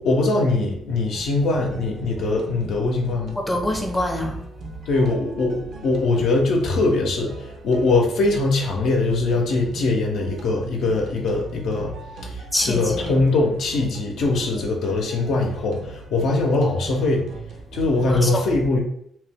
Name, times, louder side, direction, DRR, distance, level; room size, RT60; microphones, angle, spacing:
voice 1, 0.0-3.4 4.9-11.9 12.2-17.3 17.7-18.8, left 2 dB, 75° left, 0 dB, 0.6 m, -22 dB
sound 1, 1.1-18.2, right 3 dB, 65° right, 0.5 m, -41 dB
voice 2, 3.4-4.4 12.5-13.2 14.5-14.6 18.1-18.5, left 1 dB, 15° left, 4 dB, 0.5 m, -25 dB
2.9 x 2.1 x 3.3 m, 0.69 s
cardioid pair, 90°, 0 cm